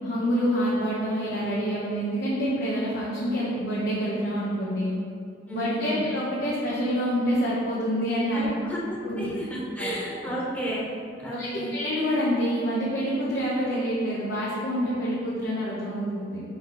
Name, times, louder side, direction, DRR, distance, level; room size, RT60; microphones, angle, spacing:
voice 1, 0.0-4.9 5.5-8.4 9.0-9.3 9.8-10.2 11.3-16.4, equal, 60° left, -8 dB, 1.1 m, -27 dB
voice 2, 5.5-6.0 8.3-10.9 11.2-11.7, equal, 10° left, -6 dB, 1.3 m, -32 dB
4.9 x 4.7 x 5.6 m, 2.5 s
head